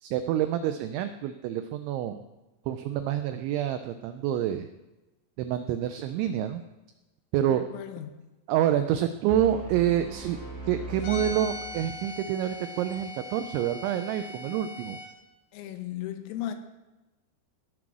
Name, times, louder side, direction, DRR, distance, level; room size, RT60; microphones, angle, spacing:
voice 1, 0.0-2.2 2.7-4.7 5.4-6.6 7.3-7.6 8.5-10.4 10.6-15.0, right 11 dB, 85° right, 9 dB, 2.6 m, -27 dB
voice 2, 7.5-8.1 15.5-16.5, left 12 dB, 80° left, 8 dB, 3.5 m, -36 dB
sound 1, 9.3-12.3, right 1 dB, 5° left, 2.4 m, -40 dB
sound 2, 11.0-15.1, left 2 dB, 65° left, 4.1 m, -40 dB
17.5 x 6.1 x 6.1 m, 1.1 s
omnidirectional pair, 5.9 m